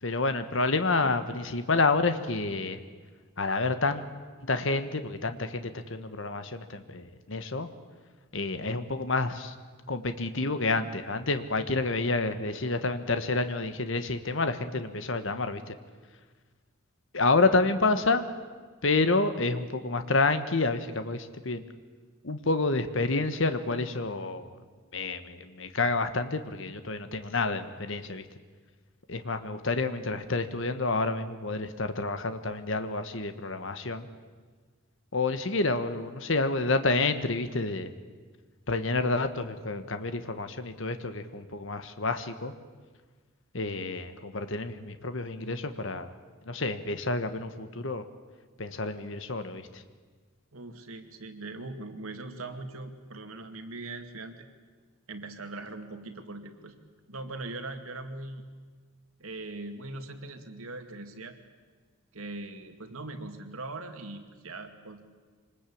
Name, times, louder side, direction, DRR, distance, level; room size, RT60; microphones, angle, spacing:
voice 1, 0.0-2.8 3.4-4.0 4.4-7.7 8.3-9.5 9.9-15.8 17.1-18.3 18.8-21.6 22.2-24.5 24.9-28.2 29.1-34.1 35.1-37.9 38.7-42.5 43.5-46.1 46.5-48.0 48.6-49.8, left 3 dB, 60° left, 10 dB, 1.3 m, -29 dB
voice 2, 50.5-54.5 55.1-56.8 57.1-58.4 59.2-61.4 62.1-65.1, right 2 dB, 90° right, 6 dB, 2.3 m, -40 dB
25.0 x 20.0 x 8.6 m, 1.5 s
head